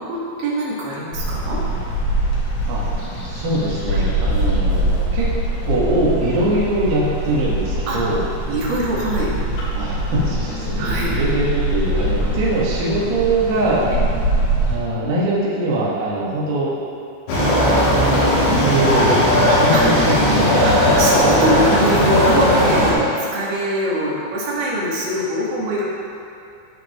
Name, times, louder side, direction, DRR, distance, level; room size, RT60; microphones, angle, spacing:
voice 1, 0.0-1.6 3.9-4.1 7.9-8.0 8.5-9.3 10.8-11.2 13.9-14.0 19.7-19.8 20.6-23.1 23.3-25.9, right 1 dB, 80° right, -6 dB, 3.9 m, -23 dB
sound 1, 1.1-14.8, right 1 dB, 90° left, 4.0 m, -23 dB
voice 2, 3.2-5.3 5.6-8.2 9.7-13.9 14.7-16.8 18.4-21.8, right 1 dB, 65° right, -7 dB, 2.7 m, -22 dB
sound 2, 17.3-22.9, equal, 70° left, 3.6 m, -16 dB
15.0 x 5.0 x 2.9 m, 2.7 s
omnidirectional pair, 5.4 m